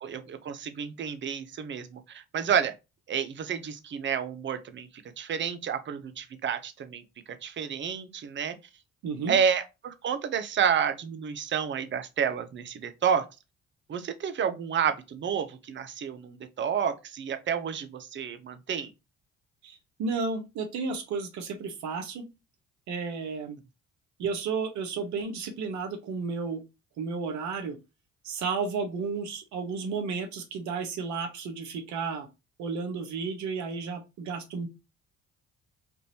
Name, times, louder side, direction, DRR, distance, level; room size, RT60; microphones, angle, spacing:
voice 1, 0.0-2.7 3.1-4.9 5.2-7.0 7.3-8.6 9.3-13.3 13.9-18.9, right 7 dB, 40° right, 0.6 m, -30 dB
voice 2, 9.0-9.3 19.6-22.2 22.9-23.6 24.2-26.6 27.0-27.8 28.2-32.3 32.6-34.7, right 5 dB, 65° right, 1.0 m, -32 dB
3.6 x 2.5 x 2.8 m
hypercardioid pair, 60°, 31 cm